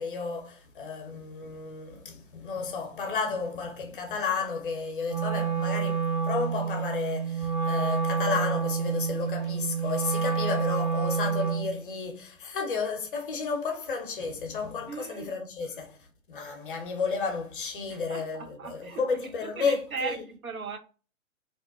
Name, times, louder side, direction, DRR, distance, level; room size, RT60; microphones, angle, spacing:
voice 1, 0.0-20.2, left 5 dB, 40° left, 0.6 m, -32 dB
Wind instrument woodwind instrument, 5.0-11.8, right 6 dB, 35° right, 0.5 m, -28 dB
voice 2, 14.9-15.3 15.6-15.8 17.9-20.8, right 5 dB, 90° right, 0.7 m, -38 dB
2.6 x 2.1 x 2.4 m
figure-of-eight pair, 125°, 41 cm